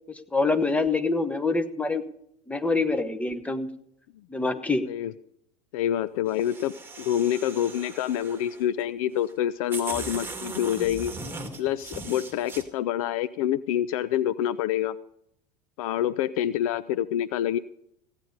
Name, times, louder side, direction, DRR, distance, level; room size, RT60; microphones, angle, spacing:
voice 1, 0.1-2.0 2.5-3.7 4.3-4.9, left 3 dB, 5° left, 8 dB, 1.2 m, -25 dB
voice 2, 5.7-11.1 11.6-15.0 15.8-17.6, left 11 dB, 55° left, 16 dB, 0.5 m, -27 dB
sound 1, 6.3-8.6 9.3-9.4 9.7-12.6, right 3 dB, 10° right, 2.3 m, -39 dB
16.0 x 9.8 x 5.2 m, 0.74 s
figure-of-eight pair, 80°, 21 cm